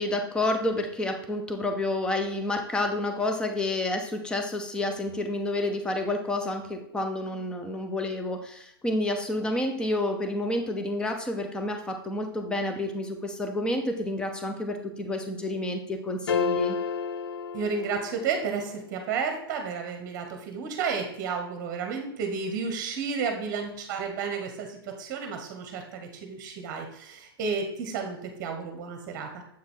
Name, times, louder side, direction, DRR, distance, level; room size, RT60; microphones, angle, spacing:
voice 1, 0.0-16.8, left 1 dB, 5° left, 6 dB, 0.6 m, -29 dB
sound 1, 16.3-18.5, left 6 dB, 85° left, 0.5 m, -30 dB
voice 2, 17.5-29.4, right 5 dB, 25° right, 4 dB, 1.1 m, -32 dB
7.5 x 4.6 x 3.8 m, 0.72 s
hypercardioid pair, 150°, 13 cm